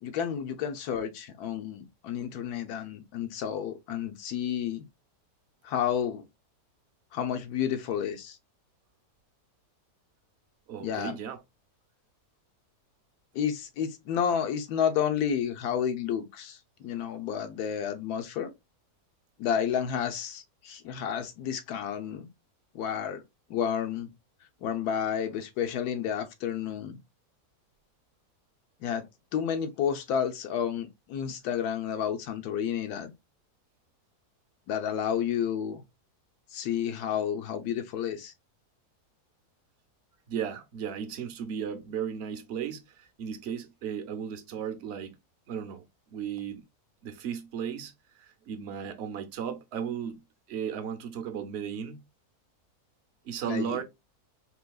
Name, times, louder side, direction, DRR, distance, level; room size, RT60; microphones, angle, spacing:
voice 1, 0.0-4.8 5.6-6.2 7.1-8.4 10.8-11.2 13.3-18.5 19.4-22.3 22.7-23.2 23.5-24.1 24.6-27.0 28.8-29.0 29.3-33.1 34.7-35.8 36.5-38.3 53.4-53.8, left 8 dB, 85° left, 1.2 m, -31 dB
voice 2, 10.7-11.4 40.3-45.2 45.5-45.8 46.1-46.6 47.0-50.2 50.5-52.0 53.2-53.8, right 8 dB, 55° right, 0.8 m, -35 dB
3.7 x 2.7 x 2.2 m
omnidirectional pair, 1.6 m